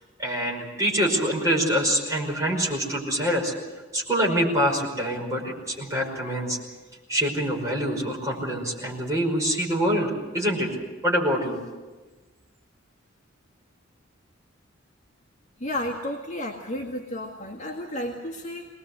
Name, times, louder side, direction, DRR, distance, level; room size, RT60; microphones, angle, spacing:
voice 1, 0.2-3.5 3.9-6.6 7.1-10.7 11.0-11.6, equal, 15° right, -2 dB, 5.2 m, -25 dB
voice 2, 15.6-18.7, left 1 dB, 35° left, -2 dB, 1.9 m, -32 dB
23.0 x 19.5 x 8.1 m, 1.3 s
head